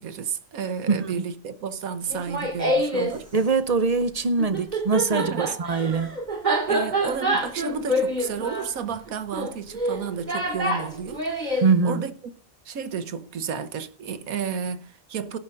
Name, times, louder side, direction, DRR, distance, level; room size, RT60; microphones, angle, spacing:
voice 1, 0.0-3.3 5.1-5.6 6.7-12.1 12.6-15.4, right 6 dB, 80° right, 1.4 m, -32 dB
Laughter, 2.1-3.2 4.4-11.7, right 1 dB, 30° right, 2.4 m, -26 dB
voice 2, 3.3-6.2 11.6-12.0, right 4 dB, 50° right, 0.4 m, -23 dB
17.5 x 11.0 x 2.5 m
omnidirectional pair, 1.5 m